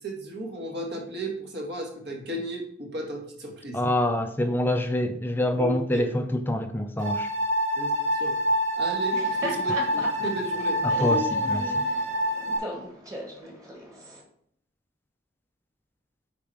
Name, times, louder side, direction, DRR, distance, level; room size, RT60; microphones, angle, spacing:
voice 1, 0.0-3.8 5.5-6.1 7.8-8.4 8.8-10.8, right 1 dB, 60° right, 1.8 m, -34 dB
voice 2, 3.7-7.3 10.8-11.8, left 1 dB, 10° left, 0.4 m, -26 dB
sound 1, 7.0-12.6, equal, 40° right, 2.1 m, -26 dB
Laughter, 9.0-14.2, equal, 20° right, 1.6 m, -37 dB
7.0 x 4.9 x 4.8 m
head